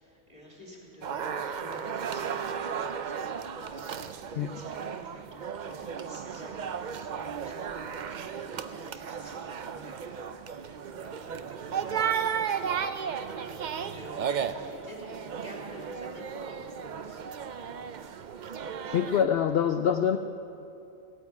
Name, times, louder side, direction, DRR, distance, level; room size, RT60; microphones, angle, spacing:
voice 1, 0.0-3.2 3.5-3.8 4.3-16.6 17.0-17.3, equal, 30° right, -3 dB, 3.2 m, -50 dB
sound 1, 1.0-19.2, right 7 dB, 55° right, 0.5 m, -34 dB
voice 2, 18.9-20.2, left 8 dB, 60° left, 8 dB, 0.7 m, -25 dB
17.0 x 9.3 x 8.4 m, 2.8 s
omnidirectional pair, 1.4 m